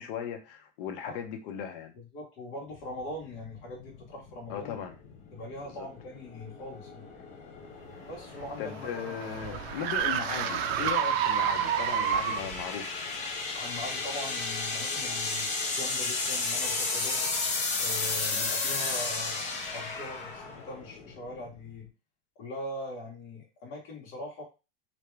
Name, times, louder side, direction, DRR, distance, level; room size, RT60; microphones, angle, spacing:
voice 1, 0.0-1.9 4.5-5.0 5.6-5.9 7.9-8.0 8.6-13.0, left 8 dB, 55° left, 0.9 m, -37 dB
voice 2, 1.9-4.8 5.3-7.1 8.1-9.2 13.5-15.5 15.7-17.3 17.8-21.9 22.4-24.4, left 1 dB, 40° left, 1.4 m, -41 dB
sound 1, 2.7-21.8, left 3 dB, 20° left, 0.6 m, -34 dB
sound 2, 8.1-12.6, right 9 dB, 70° right, 0.5 m, -29 dB
3.5 x 2.7 x 3.2 m
supercardioid pair, 160°, 32 cm